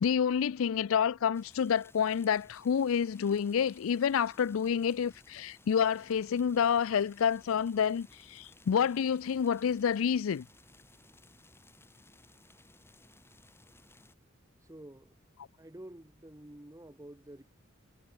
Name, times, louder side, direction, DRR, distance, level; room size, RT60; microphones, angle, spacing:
voice 1, 0.0-10.4, left 7 dB, 80° left, 0.4 m, -28 dB
sound 1, 1.3-14.1, left 2 dB, 10° left, 7.7 m, -60 dB
voice 2, 14.6-15.2 15.6-17.4, right 1 dB, 15° right, 1.0 m, -49 dB
head